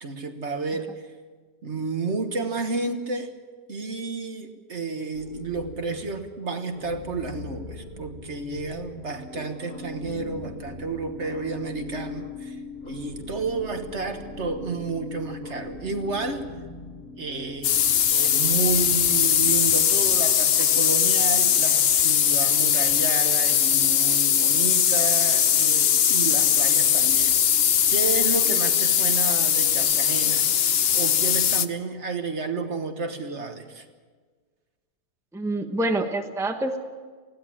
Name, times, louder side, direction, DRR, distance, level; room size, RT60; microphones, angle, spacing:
voice 1, 0.0-1.0 1.6-3.4 3.7-16.5 17.2-17.8 18.1-27.4 27.9-30.5 30.9-33.8, right 4 dB, 50° right, 7 dB, 1.6 m, -31 dB
sound 1, 5.1-20.9, left 3 dB, 35° left, 1.5 m, -44 dB
sound 2, 9.1-20.2, left 4 dB, 75° left, 4.1 m, -42 dB
sound 3, 17.6-31.7, left 8 dB, 55° left, 0.8 m, -20 dB
voice 2, 35.3-36.8, right 1 dB, ahead, 5 dB, 1.1 m, -26 dB
20.0 x 16.0 x 8.8 m, 1.5 s
omnidirectional pair, 1.5 m